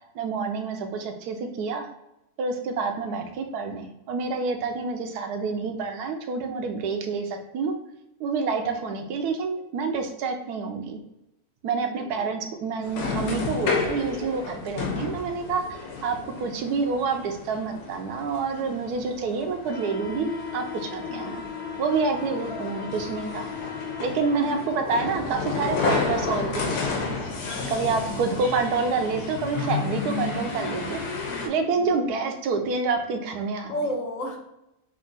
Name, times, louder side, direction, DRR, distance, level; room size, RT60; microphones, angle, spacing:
voice 1, 0.1-1.9 2.4-7.8 8.2-11.0 11.6-21.4 21.8-23.5 24.0-27.1 27.7-31.0 31.4-33.7, right 4 dB, 85° right, 5 dB, 1.1 m, -28 dB
voice 2, 3.0-3.4 8.6-8.9 11.8-12.3 21.1-21.4 22.3-22.7 24.6-24.7 27.4-28.4 31.7-32.1 33.7-34.4, equal, 60° left, 0 dB, 1.1 m, -36 dB
sound 1, 12.8-31.5, left 4 dB, 85° left, 1.2 m, -31 dB
3.5 x 2.5 x 3.8 m, 0.89 s
omnidirectional pair, 1.6 m